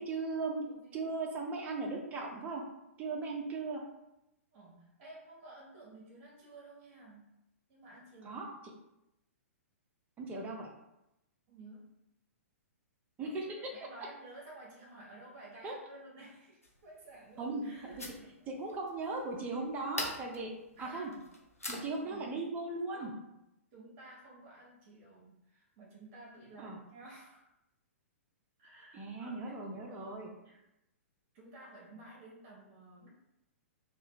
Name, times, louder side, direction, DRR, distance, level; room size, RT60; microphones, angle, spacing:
voice 1, 0.0-2.6 3.0-3.8 8.2-8.5 10.2-10.7 13.2-13.5 15.6-15.7 17.4-18.0 18.5-20.5 20.8-21.1 21.7-23.1 26.6-26.8 28.9-30.3, right 3 dB, 20° right, 0 dB, 0.6 m, -38 dB
voice 2, 0.7-1.1 4.5-7.4 7.7-8.4 11.5-12.0 13.2-18.5 20.8-21.2 22.0-22.4 22.9-23.3 23.7-27.5 28.6-30.6 31.3-33.1, right 2 dB, 35° right, -4 dB, 1.2 m, -54 dB
sound 1, 16.6-22.1, left 2 dB, 85° left, 0.6 m, -45 dB
3.1 x 2.3 x 3.1 m, 0.88 s
figure-of-eight pair, 110°, 8 cm